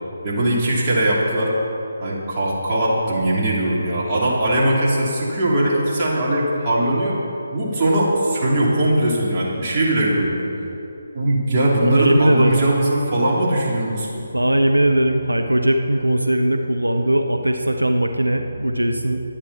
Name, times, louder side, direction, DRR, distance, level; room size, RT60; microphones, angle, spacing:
voice 1, 0.2-1.5 2.0-7.2 7.5-10.5 11.1-14.1, right 1 dB, 25° right, -7 dB, 3.4 m, -20 dB
voice 2, 11.8-12.6 14.3-19.2, right 1 dB, 85° right, 4 dB, 0.8 m, -19 dB
22.0 x 8.7 x 4.3 m, 2.9 s
figure-of-eight pair, 145°, 0 cm